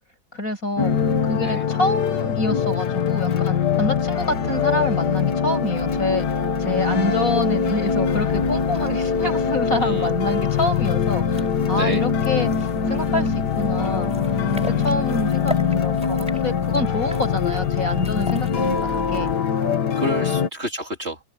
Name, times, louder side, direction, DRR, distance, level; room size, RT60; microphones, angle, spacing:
voice 1, 0.3-0.9 1.2-6.2 6.6-14.1 14.7-19.3 20.3-20.4, left 1 dB, 55° left, 8.0 m, -27 dB
sound 1, 0.8-20.5, left 7 dB, 80° left, 2.1 m, -23 dB
sound 2, 5.8-19.4, equal, 5° right, 6.0 m, -37 dB
voice 2, 9.6-10.1 11.7-12.1 20.0-21.2, right 1 dB, 40° right, 3.8 m, -29 dB
open air
omnidirectional pair, 1.8 m